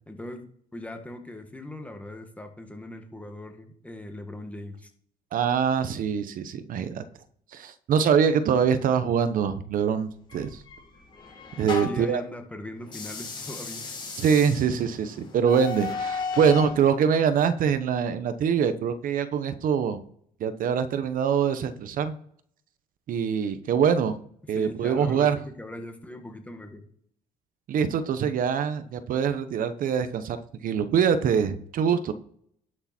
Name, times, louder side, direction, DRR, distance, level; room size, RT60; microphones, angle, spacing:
voice 1, 0.1-4.9 11.8-14.0 24.5-26.9, left 1 dB, 10° left, 5 dB, 1.9 m, -40 dB
voice 2, 5.3-7.0 7.5-10.6 11.6-12.2 14.2-20.0 20.4-22.1 23.1-24.1 24.5-25.4 27.7-30.4 30.6-32.1, right 7 dB, 65° right, 11 dB, 1.0 m, -24 dB
sound 1, 10.3-12.1 12.8-16.8, left 5 dB, 30° left, 5.1 m, -35 dB
11.5 x 6.6 x 4.4 m, 0.63 s
cardioid pair, 110°, 16 cm